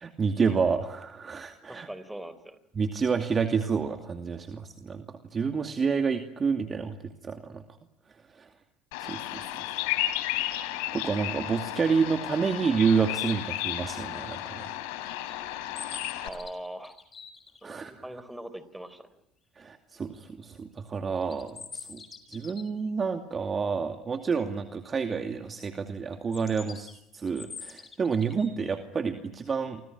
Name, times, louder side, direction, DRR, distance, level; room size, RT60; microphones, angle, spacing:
voice 1, 0.0-1.9 2.8-7.6 8.3-8.5 9.0-9.7 10.9-14.7 17.6-17.9 19.6-22.0 22.3-26.9 27.1-29.8, right 5 dB, 30° right, 6 dB, 2.5 m, -29 dB
voice 2, 1.7-2.6 16.2-17.0 17.6-19.2, right 1 dB, 5° right, 15 dB, 4.1 m, -41 dB
Bird vocalization bird call bird song, 8.9-16.3, left 14 dB, 80° left, 3.6 m, -33 dB
sound 1, 15.0-17.7 21.2-22.8 26.3-28.8, left 5 dB, 30° left, 6.1 m, -45 dB
30.0 x 25.5 x 6.2 m, 0.77 s
supercardioid pair, 85°, 0 cm